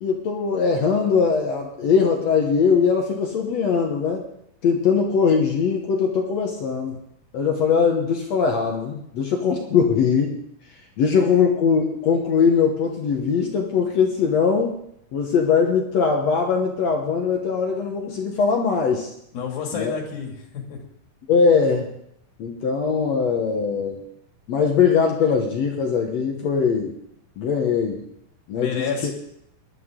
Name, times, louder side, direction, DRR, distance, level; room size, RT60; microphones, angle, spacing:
voice 1, 0.0-4.3 4.6-7.0 7.3-10.4 11.0-14.8 15.1-19.1 19.7-19.9 21.3-22.0 22.4-24.0 24.5-26.9 27.4-28.0 28.5-29.1, left 6 dB, 60° left, 2 dB, 1.9 m, -21 dB
voice 2, 19.3-20.8 28.6-29.1, left 6 dB, 80° left, 1 dB, 4.2 m, -29 dB
19.5 x 12.0 x 3.7 m, 0.75 s
omnidirectional pair, 4.2 m